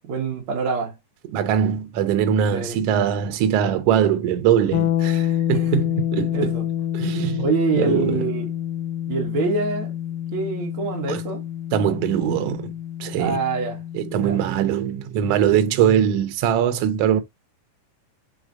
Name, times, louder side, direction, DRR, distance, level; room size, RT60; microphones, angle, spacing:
voice 1, 0.0-1.0 2.5-2.8 5.5-6.0 6.3-6.6 7.4-8.5 9.1-9.9 10.3-11.4 13.2-13.8 14.2-14.4, right 4 dB, 60° right, 1.5 m, -25 dB
voice 2, 1.3-6.4 6.9-7.4 7.8-8.1 11.1-11.2 11.7-12.7 13.0-13.4 13.9-17.2, right 9 dB, 85° right, 1.4 m, -21 dB
sound 1, 4.7-14.5, left 11 dB, 85° left, 2.1 m, -27 dB
6.1 x 3.2 x 2.4 m
omnidirectional pair, 3.6 m